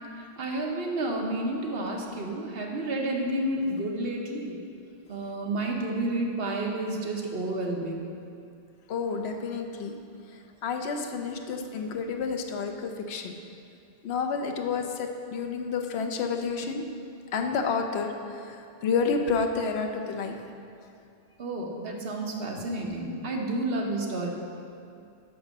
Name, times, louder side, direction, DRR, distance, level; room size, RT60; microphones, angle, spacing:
voice 1, 0.4-4.6 5.1-8.1 21.4-24.3, right 1 dB, 70° right, 0 dB, 1.1 m, -30 dB
voice 2, 8.9-9.9 10.6-13.3 14.0-16.8 17.3-18.1 18.8-20.4, left 5 dB, 85° left, 4 dB, 0.9 m, -29 dB
6.1 x 5.9 x 6.4 m, 2.5 s
omnidirectional pair, 1.1 m